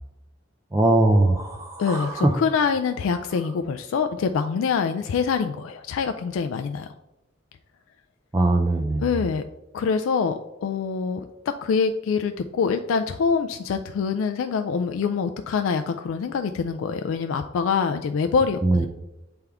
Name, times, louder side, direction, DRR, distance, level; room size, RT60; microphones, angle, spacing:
voice 1, 0.7-2.3 8.3-9.0 18.6-18.9, right 2 dB, 15° right, 2 dB, 0.4 m, -20 dB
voice 2, 1.8-6.9 9.0-9.4 9.7-18.9, left 5 dB, 70° left, 8 dB, 0.3 m, -25 dB
7.9 x 3.5 x 3.5 m, 0.96 s
head